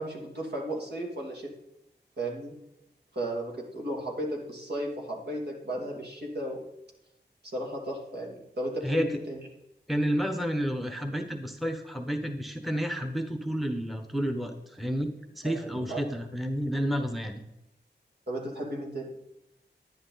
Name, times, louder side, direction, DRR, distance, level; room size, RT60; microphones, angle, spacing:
voice 1, 0.0-1.5 2.2-2.5 3.1-6.6 7.4-9.4 15.4-16.0 18.3-19.1, right 1 dB, 65° right, -1 dB, 2.7 m, -35 dB
voice 2, 9.9-15.1 15.4-17.4, equal, ahead, 5 dB, 1.0 m, -30 dB
10.5 x 10.5 x 4.0 m, 0.86 s
wide cardioid pair, 85°, 18 cm